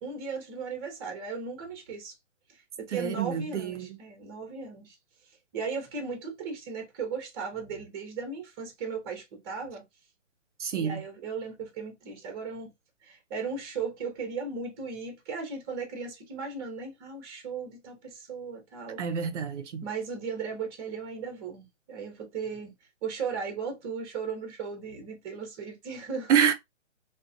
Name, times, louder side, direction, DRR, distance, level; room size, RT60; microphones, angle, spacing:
voice 1, 0.0-2.1 2.8-4.9 5.5-9.8 10.7-12.7 13.0-19.0 19.8-22.7 23.0-26.3, right 5 dB, 20° right, 0.7 m, -36 dB
voice 2, 2.9-3.9 10.6-11.0 19.0-19.8 26.3-26.5, right 8 dB, 70° right, 0.5 m, -27 dB
2.4 x 2.1 x 2.5 m
hypercardioid pair, 140°, 37 cm